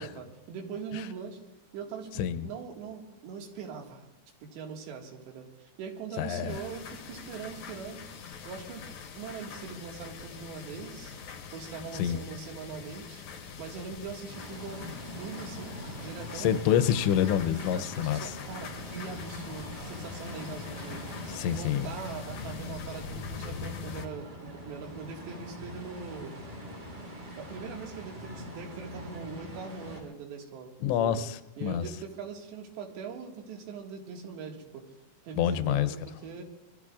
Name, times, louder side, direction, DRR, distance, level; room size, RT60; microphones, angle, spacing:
voice 1, 0.0-1.4 1.7-4.1 4.4-8.0 8.5-8.9 9.2-11.2 11.5-13.2 13.6-14.8 15.2-16.5 17.5-21.0 21.5-26.3 27.4-30.7 31.0-31.2 31.6-34.9 35.2-36.4, right 5 dB, 75° right, 1 dB, 4.0 m, -41 dB
voice 2, 2.2-2.5 6.2-6.6 12.0-12.2 16.4-18.3 21.3-21.9 30.8-31.9 35.3-35.9, left 10 dB, 85° left, 13 dB, 3.0 m, -27 dB
sound 1, 6.5-24.1, left 6 dB, 65° left, 1.9 m, -43 dB
sound 2, 14.3-30.0, equal, 45° right, 5.0 m, -43 dB
27.0 x 22.0 x 2.4 m, 1.0 s
omnidirectional pair, 5.1 m